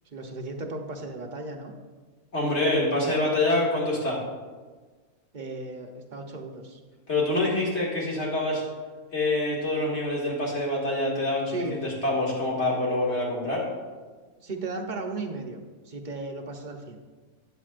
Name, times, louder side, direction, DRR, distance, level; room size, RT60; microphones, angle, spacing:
voice 1, 0.1-1.7 5.3-6.8 11.5-11.9 14.4-15.6 15.8-17.0, right 2 dB, 40° right, 2 dB, 0.8 m, -35 dB
voice 2, 2.3-4.2 7.1-8.6 9.1-13.7, left 2 dB, 45° left, -4 dB, 2.4 m, -26 dB
12.0 x 8.9 x 2.5 m, 1.4 s
omnidirectional pair, 1.6 m